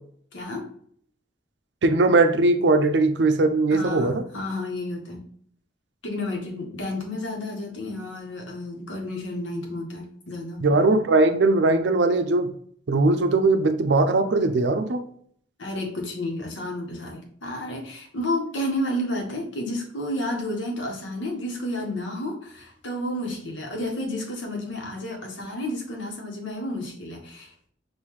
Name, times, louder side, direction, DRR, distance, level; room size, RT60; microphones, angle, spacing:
voice 1, 0.3-0.7 3.7-5.2 6.0-10.6 15.6-27.5, left 1 dB, 80° left, 0 dB, 1.3 m, -31 dB
voice 2, 1.8-4.2 10.6-12.5 12.9-15.0, right 2 dB, 65° right, 8 dB, 0.5 m, -20 dB
5.6 x 2.6 x 3.1 m, 0.62 s
head